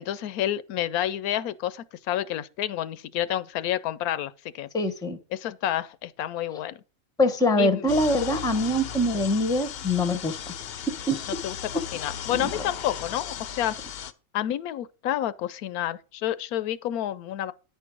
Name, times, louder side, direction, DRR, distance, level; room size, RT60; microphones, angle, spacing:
voice 1, 0.0-4.7 5.3-6.8 7.6-7.9 11.4-13.8 14.3-17.5, left 12 dB, 90° left, 1.1 m, -29 dB
voice 2, 4.7-5.2 7.2-10.5 11.1-11.2 12.4-12.5, left 1 dB, 5° left, 0.6 m, -24 dB
sound 1, 7.9-14.1, left 8 dB, 60° left, 0.7 m, -36 dB
10.0 x 4.6 x 6.1 m
omnidirectional pair, 1.5 m